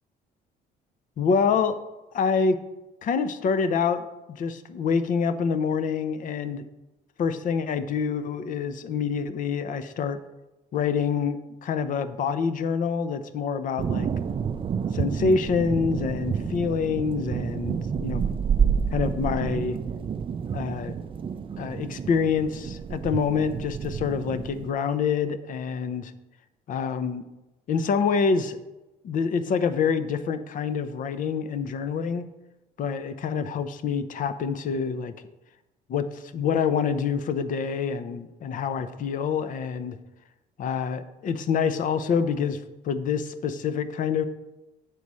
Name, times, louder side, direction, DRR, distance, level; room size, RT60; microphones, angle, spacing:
voice 1, 1.2-1.8 2.1-2.6 3.0-6.6 7.2-10.2 10.7-14.1 14.9-18.3 18.9-19.8 20.5-20.9 21.6-26.1 26.7-27.2 27.7-28.6 29.0-32.2 32.8-35.1 35.9-40.0 40.6-44.3, left 6 dB, 50° left, 12 dB, 0.6 m, -26 dB
sound 1, 13.8-24.7, right 7 dB, 30° right, 0.4 m, -29 dB
8.3 x 4.2 x 6.2 m, 1.0 s
cardioid pair, 110°, 17 cm